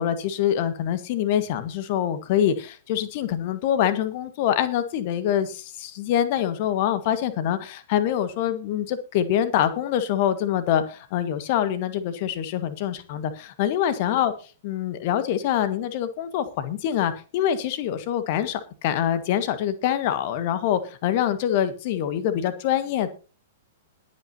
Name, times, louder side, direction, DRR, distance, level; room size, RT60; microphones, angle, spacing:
voice 1, 0.0-14.3 14.6-23.1, left 10 dB, 45° left, 12 dB, 1.7 m, -25 dB
21.0 x 8.9 x 2.9 m, 0.35 s
figure-of-eight pair, 105°, 0 cm